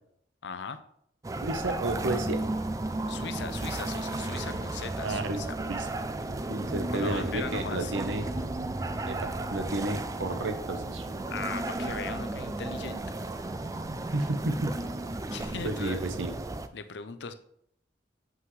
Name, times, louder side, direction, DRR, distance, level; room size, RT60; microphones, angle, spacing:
voice 1, 0.4-0.8 3.1-5.5 6.9-7.9 11.3-13.0 15.3-16.0 16.7-17.3, left 5 dB, 75° left, 10 dB, 0.6 m, -38 dB
sound 1, 1.2-16.7, right 2 dB, 20° right, 0.3 m, -34 dB
voice 2, 1.4-2.4 5.0-5.4 5.7-5.9 6.5-8.3 9.1-11.1 14.1-14.8 15.6-16.3, right 2 dB, 90° right, 8 dB, 0.8 m, -32 dB
sound 2, 3.0-15.7, right 2 dB, 50° right, 2.1 m, -48 dB
7.5 x 5.8 x 3.2 m, 0.68 s
head